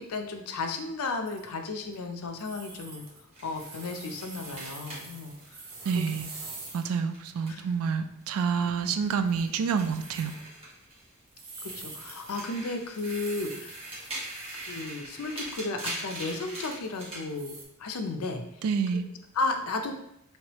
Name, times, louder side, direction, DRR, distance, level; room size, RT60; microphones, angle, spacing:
voice 1, 0.0-3.1 3.4-5.4 6.0-6.5 7.5-7.6 8.6-8.7 11.6-13.8 14.5-18.4 19.3-20.0, left 3 dB, 80° left, 5 dB, 0.5 m, -34 dB
sound 1, 1.3-2.1 2.4-7.0 7.3-7.4 7.9-8.1 8.4-8.7 9.1-10.5 11.3-15.0 15.3-15.4 16.8-17.6, right 3 dB, 45° right, 0.8 m, -46 dB
sound 2, 3.3-7.9 8.2-11.2 11.5-17.2, right 1 dB, 30° right, 1.2 m, -42 dB
voice 2, 5.9-6.3 6.7-10.3 18.6-19.1, right 6 dB, 70° right, 10 dB, 0.3 m, -28 dB
3.5 x 3.2 x 3.0 m, 0.77 s
head